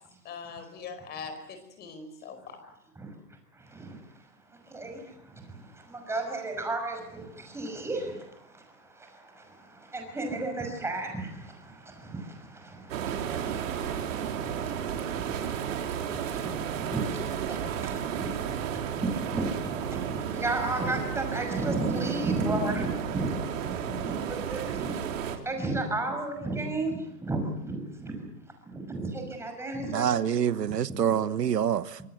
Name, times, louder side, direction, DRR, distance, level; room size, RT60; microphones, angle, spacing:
voice 1, 0.2-2.6, left 5 dB, 20° left, 4.6 m, -41 dB
voice 2, 3.6-4.0 4.7-24.9 25.4-28.3 28.7-30.1, right 2 dB, 5° right, 5.8 m, -34 dB
sound 1, 12.9-25.4, right 8 dB, 55° right, 3.7 m, -33 dB
voice 3, 29.9-32.0, right 9 dB, 85° right, 1.3 m, -26 dB
25.5 x 22.5 x 7.9 m
hypercardioid pair, 145°, 48 cm